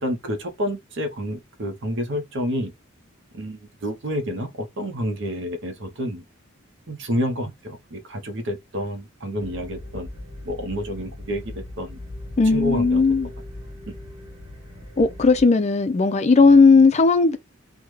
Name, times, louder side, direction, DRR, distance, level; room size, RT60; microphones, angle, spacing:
voice 1, 0.0-2.7 3.3-6.2 6.9-10.1 10.4-12.0 12.5-13.0 13.9-14.0, equal, 60° right, 0.8 m, -29 dB
sound 1, 9.4-15.4, left 1 dB, 20° right, 1.5 m, -38 dB
voice 2, 12.4-13.3 15.0-17.4, left 4 dB, 35° left, 0.4 m, -16 dB
3.4 x 2.2 x 3.1 m
head